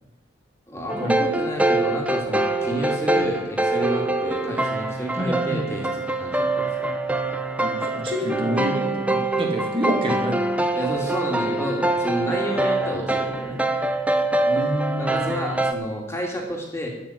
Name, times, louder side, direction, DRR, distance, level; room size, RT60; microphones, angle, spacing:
voice 1, 0.7-6.7 10.8-13.6 15.0-16.9, equal, 15° left, 0 dB, 2.3 m, -30 dB
sound 1, 0.9-15.7, right 2 dB, 5° right, 0.9 m, -24 dB
voice 2, 5.2-5.6 7.6-10.4 14.5-15.3, equal, 30° right, 0 dB, 2.7 m, -27 dB
14.0 x 6.0 x 9.4 m, 0.97 s
head